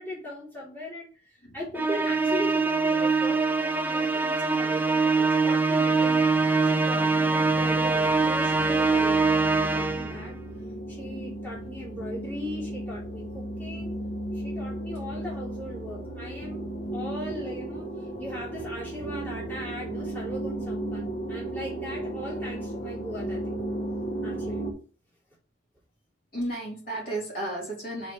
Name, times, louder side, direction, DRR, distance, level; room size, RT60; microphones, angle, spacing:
voice 1, 0.0-6.2 6.6-10.4 10.9-13.9 14.3-23.5 24.2-24.7, left 1 dB, 10° left, -8 dB, 3.4 m, -39 dB
Musical instrument, 1.7-10.2, right 4 dB, 10° right, 0.4 m, -23 dB
sound 1, 5.9-24.7, right 1 dB, 75° left, 2.9 m, -35 dB
voice 2, 26.3-28.1, right 1 dB, 50° left, -4 dB, 3.6 m, -33 dB
8.6 x 4.5 x 3.4 m, 0.38 s
head